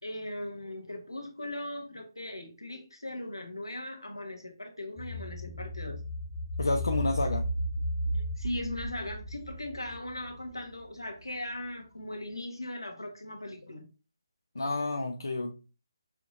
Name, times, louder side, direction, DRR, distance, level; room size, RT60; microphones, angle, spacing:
voice 1, 0.0-6.0 8.1-13.9, left 1 dB, 85° left, 4 dB, 1.2 m, -39 dB
sound 1, 5.0-10.6 11.0-11.1, equal, 5° right, 0.8 m, -34 dB
voice 2, 6.6-7.4 14.5-15.5, left 2 dB, 65° left, 3 dB, 0.6 m, -29 dB
5.8 x 2.9 x 2.5 m, 0.32 s
figure-of-eight pair, 145°, 2 cm